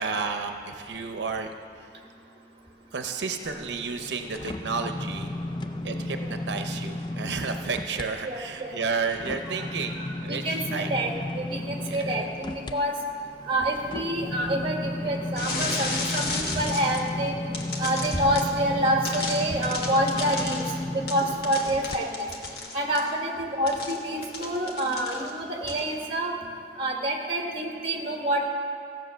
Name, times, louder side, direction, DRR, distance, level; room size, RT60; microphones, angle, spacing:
voice 1, 0.0-1.5 1.8-1.9 2.9-5.3 5.8-10.9 11.8-12.1, right 4 dB, 90° right, 6 dB, 0.7 m, -32 dB
sound 1, 3.4-8.1 8.5-22.0 22.5-22.6, left 1 dB, 25° left, 0.4 m, -34 dB
voice 2, 8.2-8.7 9.5-9.6 10.0-11.1 11.3-12.9 13.5-17.4 17.8-20.6 20.9-22.3 22.7-26.3 26.8-28.5, right 1 dB, 30° right, 1 dB, 1.5 m, -27 dB
sound 2, 15.4-17.1 17.5-18.6 19.0-23.1 23.7-25.4 25.7-25.9, left 3 dB, 60° left, 1.4 m, -33 dB
15.0 x 7.6 x 6.2 m, 2.5 s
head